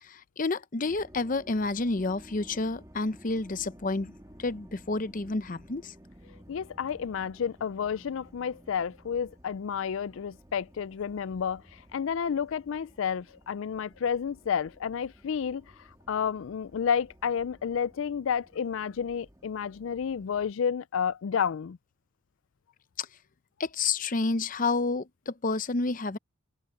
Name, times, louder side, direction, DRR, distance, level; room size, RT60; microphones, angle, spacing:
voice 1, 0.0-5.9 23.0-23.1 23.6-26.2, left 3 dB, 40° left, 0.7 m, -30 dB
sound 1, 0.9-20.5, equal, 15° right, 2.0 m, -54 dB
voice 2, 6.5-21.8, left 7 dB, 70° left, 0.4 m, -31 dB
head